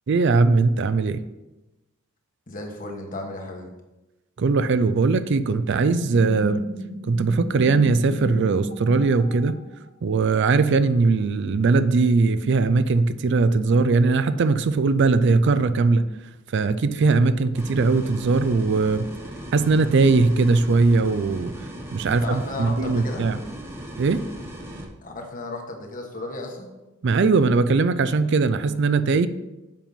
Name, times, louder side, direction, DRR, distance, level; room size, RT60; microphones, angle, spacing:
voice 1, 0.1-1.2 4.4-6.6 7.0-9.6 10.0-16.1 16.5-19.1 19.5-21.5 21.9-23.4 24.0-24.2 27.0-29.3, right 3 dB, 60° right, 13 dB, 0.4 m, -20 dB
voice 2, 2.5-3.7 22.2-23.3 25.0-26.7, left 2 dB, 40° left, 2 dB, 1.3 m, -34 dB
sound 1, 6.0-10.2, left 1 dB, 60° left, 1.2 m, -36 dB
sound 2, 17.5-24.8, right 1 dB, 15° right, 1.2 m, -37 dB
7.5 x 5.3 x 5.7 m, 1.0 s
head